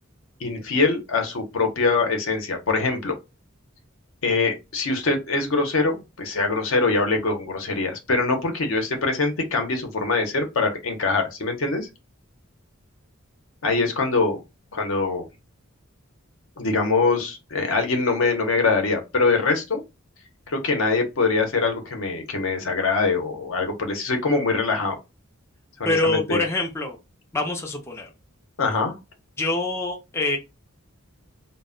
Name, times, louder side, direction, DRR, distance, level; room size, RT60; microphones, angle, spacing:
voice 1, 0.4-3.1 4.2-11.9 13.6-14.4 14.7-15.3 16.6-19.8 20.5-25.0 25.8-26.4 28.6-28.9, left 3 dB, 70° left, 0.7 m, -23 dB
voice 2, 25.8-27.0 27.3-28.1 29.4-30.4, left 2 dB, 15° left, 0.3 m, -25 dB
2.1 x 2.0 x 3.6 m
head